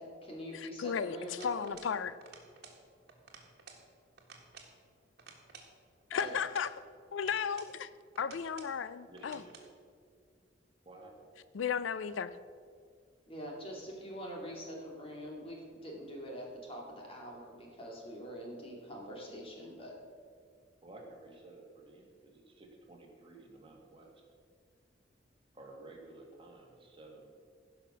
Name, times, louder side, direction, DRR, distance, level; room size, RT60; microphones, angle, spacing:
voice 1, 0.0-1.7 6.1-6.3 13.3-19.9, equal, 30° left, -1 dB, 2.5 m, -44 dB
voice 2, 0.5-2.2 6.1-6.7 7.1-7.9 8.2-9.4 11.5-12.4, left 7 dB, 90° left, 15 dB, 0.4 m, -35 dB
sound 1, 1.4-2.0 2.2-2.8 3.1-3.8 4.2-4.7 5.2-6.7 7.2-7.8 8.1-8.8 9.2-9.7, right 5 dB, 60° right, 1.7 m, -54 dB
voice 3, 9.1-9.6 10.9-11.3 20.8-24.1 25.5-27.3, right 2 dB, 30° right, 0 dB, 1.9 m, -53 dB
15.5 x 5.9 x 6.1 m, 2.1 s
head